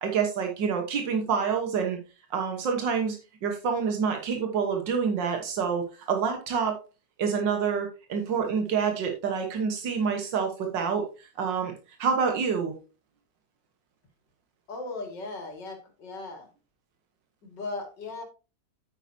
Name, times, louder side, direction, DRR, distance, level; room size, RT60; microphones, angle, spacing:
voice 1, 0.0-2.0 2.3-6.8 7.2-11.7 12.0-12.8, right 6 dB, 85° right, 3 dB, 2.0 m, -27 dB
voice 2, 14.7-16.5 17.4-18.2, left 3 dB, 75° left, 4 dB, 2.9 m, -37 dB
9.4 x 8.9 x 2.8 m, 0.32 s
omnidirectional pair, 1.9 m